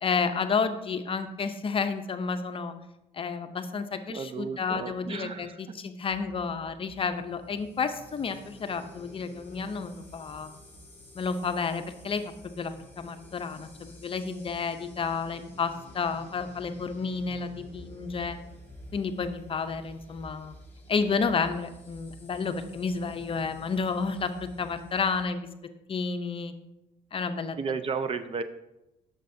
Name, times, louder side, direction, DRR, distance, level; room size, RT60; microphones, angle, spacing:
voice 1, 0.0-2.7 3.1-10.5 11.1-12.2 12.6-18.4 18.9-20.5 20.9-25.5 25.9-26.5 27.1-27.6, left 5 dB, 30° left, 9 dB, 0.6 m, -31 dB
voice 2, 4.1-5.6 27.6-28.4, right 5 dB, 35° right, 11 dB, 0.5 m, -33 dB
sound 1, 6.0-25.2, left 1 dB, 10° left, 2.5 m, -50 dB
9.0 x 6.7 x 2.6 m, 0.92 s
cardioid pair, 110°, 17 cm